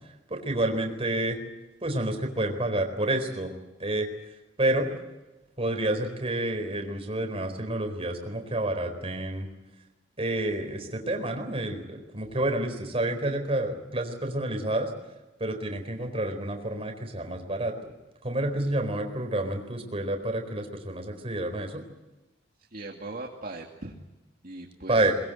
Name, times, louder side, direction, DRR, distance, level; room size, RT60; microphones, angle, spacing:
voice 1, 0.3-1.4 1.8-3.5 3.8-4.1 4.6-4.9 5.6-9.5 10.2-14.9 15.4-17.7 18.2-21.8 24.9-25.1, right 1 dB, 35° right, 5 dB, 4.3 m, -29 dB
voice 2, 22.7-23.9 24.4-25.1, right 2 dB, 50° right, 0 dB, 2.3 m, -39 dB
22.5 x 21.5 x 9.1 m, 1.1 s
head